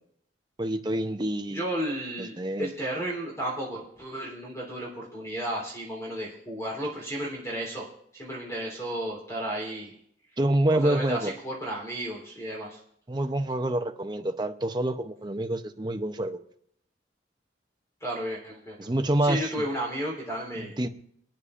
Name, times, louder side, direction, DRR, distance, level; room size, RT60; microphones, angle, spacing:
voice 1, 0.6-1.7 2.2-2.7 10.4-11.3 13.1-16.4 18.8-19.6 20.6-20.9, right 1 dB, 25° right, 7 dB, 0.6 m, -27 dB
voice 2, 1.5-7.9 8.1-9.9 10.7-12.8 18.0-18.9 19.2-20.7, right 1 dB, 15° left, -2 dB, 3.5 m, -33 dB
27.0 x 9.9 x 2.5 m, 0.70 s
head